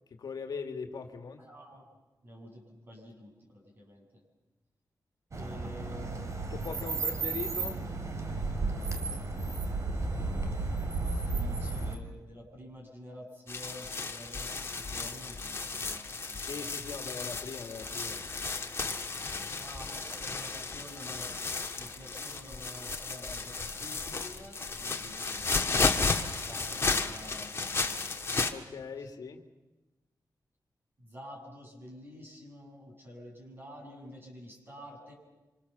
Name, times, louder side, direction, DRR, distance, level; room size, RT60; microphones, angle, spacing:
voice 1, 0.2-1.4 6.5-7.8 16.4-18.3 28.5-29.4, left 5 dB, 75° left, 6 dB, 2.0 m, -40 dB
voice 2, 1.4-1.9 2.2-4.2 5.3-6.3 9.0-9.1 10.1-16.7 19.5-21.3 21.7-25.5 26.4-28.4 29.0-29.1 31.0-35.1, equal, 30° right, 0 dB, 7.5 m, -49 dB
sound 1, 5.3-12.0, right 3 dB, 50° right, 2.8 m, -33 dB
sound 2, 13.5-28.5, left 4 dB, 40° left, 1.7 m, -33 dB
26.0 x 26.0 x 7.0 m, 1.1 s
wide cardioid pair, 125°, 7 cm